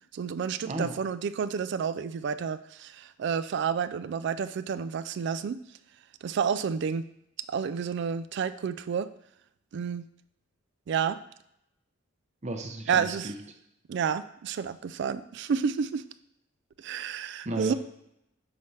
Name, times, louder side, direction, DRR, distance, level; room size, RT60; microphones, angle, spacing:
voice 1, 0.1-5.6 6.2-7.1 7.5-9.1 9.7-10.0 10.9-11.2 12.9-13.3 13.9-16.0 16.8-17.7, right 6 dB, 55° right, 14 dB, 0.3 m, -30 dB
voice 2, 0.6-1.0 12.4-13.3 17.4-17.7, right 2 dB, 35° right, 5 dB, 0.7 m, -33 dB
6.0 x 3.2 x 5.5 m, 0.78 s
head